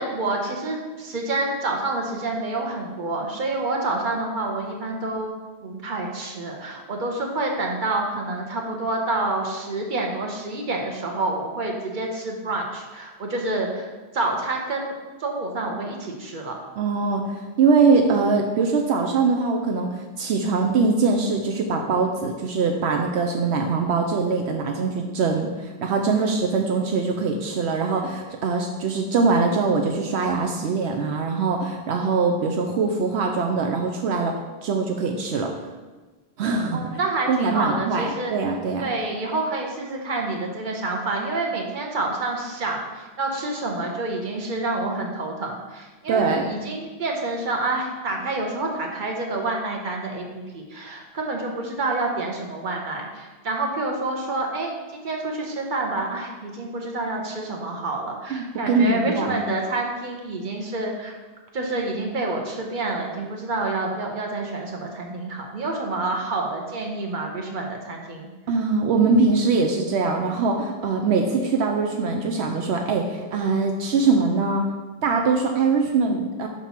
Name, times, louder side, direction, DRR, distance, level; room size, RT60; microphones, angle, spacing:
voice 1, 0.0-5.3 5.6-13.9 14.1-14.9 15.2-16.6 26.1-26.4 36.7-38.3 38.8-61.1 61.5-68.3, right 2 dB, 50° right, 1 dB, 1.2 m, -28 dB
voice 2, 16.8-34.3 34.6-35.5 36.4-36.8 37.3-38.9 46.1-46.4 58.3-59.4 68.5-74.7 75.0-76.5, right 4 dB, 80° right, 2 dB, 0.9 m, -22 dB
5.3 x 5.1 x 5.7 m, 1.3 s
omnidirectional pair, 1.1 m